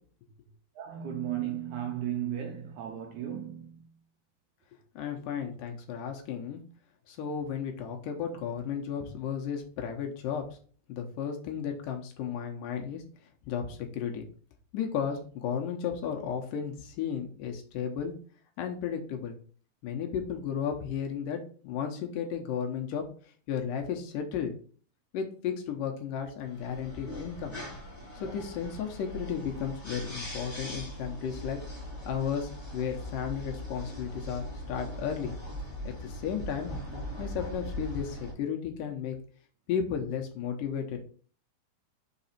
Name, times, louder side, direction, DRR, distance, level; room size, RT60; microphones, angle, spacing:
voice 1, 0.8-3.8, right 10 dB, 80° right, 1.7 m, -35 dB
voice 2, 5.0-6.6 7.1-10.4 10.9-13.0 13.5-14.3 14.7-18.1 18.6-19.4 19.8-23.0 23.5-24.5 25.1-27.6 28.2-31.6 32.1-35.3 35.8-36.7 37.2-39.2 39.7-41.0, left 7 dB, 75° left, 2.3 m, -34 dB
sound 1, 26.4-38.3, equal, 15° left, 2.7 m, -40 dB
5.9 x 4.2 x 4.2 m
omnidirectional pair, 4.4 m